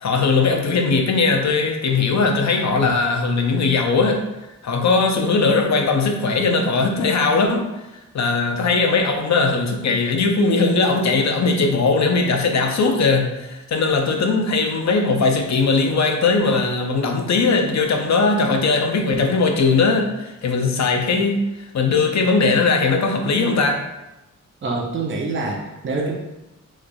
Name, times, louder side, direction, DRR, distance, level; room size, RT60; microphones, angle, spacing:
voice 1, 0.0-4.2 4.6-7.6 8.1-21.4 21.7-23.8, left 4 dB, 65° left, 3 dB, 0.6 m, -19 dB
voice 2, 24.6-26.2, right 3 dB, 40° right, -2 dB, 0.6 m, -25 dB
3.8 x 3.1 x 2.2 m, 0.98 s
wide cardioid pair, 105°, 30 cm